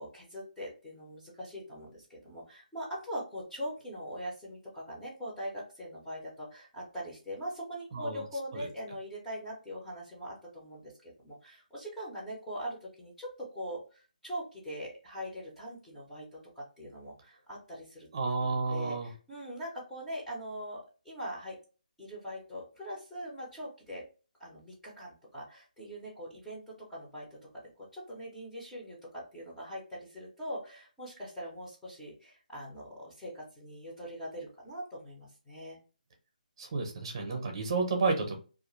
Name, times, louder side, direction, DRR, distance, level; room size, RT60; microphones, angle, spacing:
voice 1, 0.0-18.1 18.4-21.6 22.0-24.0 24.4-27.4 27.8-35.8 37.3-37.4, equal, 5° left, -7 dB, 0.6 m, -42 dB
voice 2, 7.9-8.2 8.5-8.7 18.1-19.1 36.6-38.4, right 3 dB, 35° right, 4 dB, 0.7 m, -31 dB
2.4 x 2.1 x 3.0 m, 0.35 s
hypercardioid pair, 170°, 5 cm